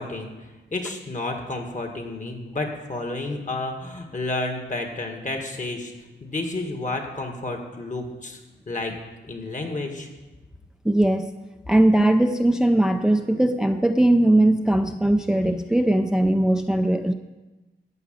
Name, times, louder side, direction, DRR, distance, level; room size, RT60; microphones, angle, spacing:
voice 1, 0.0-5.9 6.2-8.4 8.7-8.9 9.3-10.1, left 2 dB, 40° left, 4 dB, 1.8 m, -31 dB
voice 2, 10.8-11.3 11.7-17.1, right 1 dB, 5° right, 8 dB, 0.4 m, -19 dB
14.5 x 4.8 x 8.9 m, 1.1 s
wide cardioid pair, 100°, 19 cm